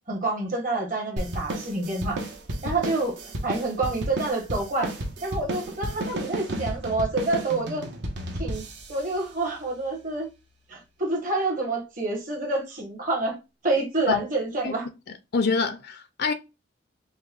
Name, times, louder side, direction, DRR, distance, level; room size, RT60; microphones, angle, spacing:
voice 1, 0.1-2.2 2.6-3.2 3.4-4.9 5.2-7.8 8.3-8.6 8.9-10.3 10.7-14.9, right 2 dB, 45° right, 1.4 m, -27 dB
sound 1, 1.2-10.0, right 1 dB, 65° right, 0.9 m, -33 dB
voice 2, 15.3-16.3, left 4 dB, 60° left, 0.5 m, -25 dB
5.3 x 2.2 x 2.5 m
head